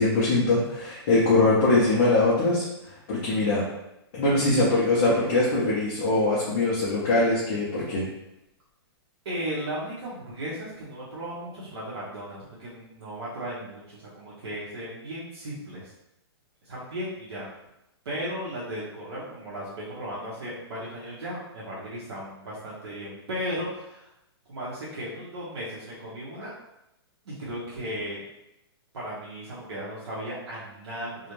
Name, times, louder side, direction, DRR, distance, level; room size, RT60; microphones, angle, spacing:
voice 1, 0.0-3.7 4.1-8.1, left 2 dB, 20° left, -6 dB, 0.3 m, -22 dB
voice 2, 9.2-15.9 16.6-17.5 18.0-24.1 24.5-26.5 27.2-28.2 28.9-31.3, equal, 75° right, -7 dB, 0.8 m, -36 dB
2.4 x 2.1 x 3.0 m, 0.88 s
hypercardioid pair, 170°, 14 cm